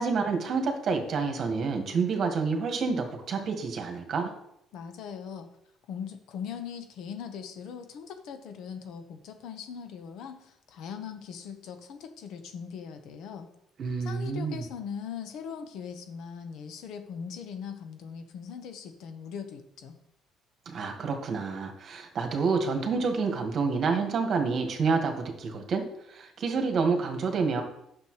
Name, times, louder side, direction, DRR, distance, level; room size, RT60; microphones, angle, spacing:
voice 1, 0.0-4.3 13.8-14.6 20.6-25.8 26.1-27.6, right 4 dB, 50° right, 4 dB, 1.7 m, -28 dB
voice 2, 4.7-5.5 5.9-13.5 14.0-20.0, left 7 dB, 75° left, 7 dB, 1.1 m, -40 dB
9.7 x 6.7 x 3.2 m, 0.77 s
cardioid pair, 95°, 0 cm